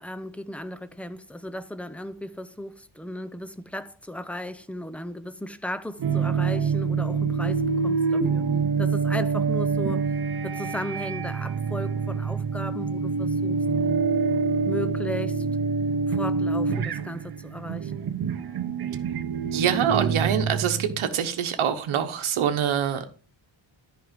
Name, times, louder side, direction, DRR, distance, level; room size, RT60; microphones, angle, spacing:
voice 1, 0.0-8.5 8.8-10.1 10.4-13.6 14.7-15.5 16.1-17.9, left 1 dB, 5° left, 0.5 m, -35 dB
sound 1, 6.0-21.1, right 5 dB, 50° right, 0.8 m, -26 dB
voice 2, 19.5-23.0, right 8 dB, 90° right, 1.1 m, -25 dB
11.0 x 4.9 x 5.1 m
wide cardioid pair, 150°, 48 cm